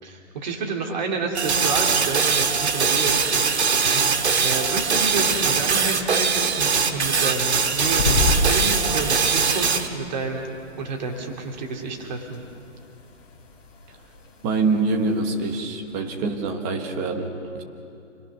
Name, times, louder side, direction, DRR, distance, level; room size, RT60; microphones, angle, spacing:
voice 1, 0.0-3.2 4.4-10.4 10.8-12.4, right 4 dB, 35° right, 1 dB, 2.7 m, -29 dB
sound 1, 1.3-9.9, right 5 dB, 60° right, 1.9 m, -21 dB
sound 2, 4.0-15.6, left 3 dB, 20° left, 4.2 m, -33 dB
voice 2, 14.4-17.6, right 3 dB, 10° right, 4 dB, 1.1 m, -25 dB
28.5 x 21.0 x 6.3 m, 2.6 s
hypercardioid pair, 165°, 37 cm